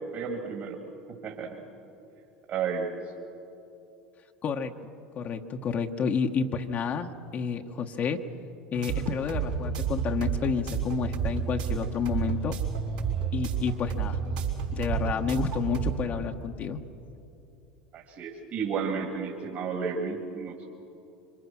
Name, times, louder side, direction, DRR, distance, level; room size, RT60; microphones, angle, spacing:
voice 1, 0.1-0.8 1.2-1.6 2.5-3.0 17.9-20.7, right 5 dB, 45° right, 0 dB, 2.9 m, -32 dB
voice 2, 4.4-8.2 8.7-12.6 13.3-14.2 14.7-16.8, left 6 dB, 40° left, 4 dB, 1.3 m, -30 dB
sound 1, 8.7-15.9, right 6 dB, 80° right, 5.0 m, -30 dB
26.0 x 25.0 x 6.3 m, 2.8 s
hypercardioid pair, 80°, 4 cm